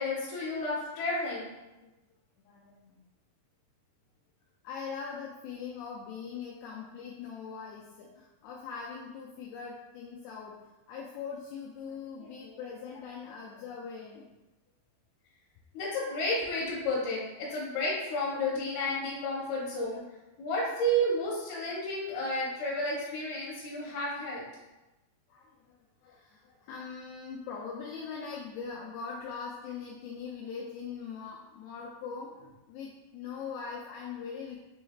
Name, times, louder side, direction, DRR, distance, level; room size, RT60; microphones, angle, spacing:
voice 1, 0.0-1.5 15.7-20.0 20.4-24.4, equal, 70° left, -7 dB, 2.8 m, -31 dB
voice 2, 2.5-3.0 4.6-10.6 10.9-14.3 25.3-25.8 26.0-34.6, left 6 dB, 90° left, -2 dB, 2.2 m, -41 dB
6.9 x 3.2 x 2.3 m, 1.0 s
omnidirectional pair, 5.0 m